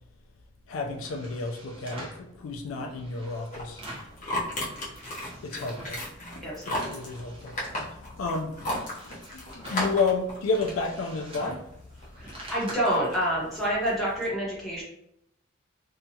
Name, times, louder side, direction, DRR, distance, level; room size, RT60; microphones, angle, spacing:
voice 1, 0.7-3.8 5.4-6.0 6.7-7.6 8.0-8.6 9.3-11.6, left 3 dB, 70° left, 3 dB, 0.4 m, -31 dB
sound 1, 0.8-2.2 2.7-4.2 4.5-6.0 6.4-8.0 8.4-12.7, right 1 dB, 25° right, 0.7 m, -46 dB
sound 2, 3.5-14.3, left 1 dB, 35° left, 0.8 m, -36 dB
voice 2, 6.4-7.0 12.2-14.8, equal, ahead, -7 dB, 0.9 m, -28 dB
2.7 x 2.3 x 2.7 m, 0.77 s
head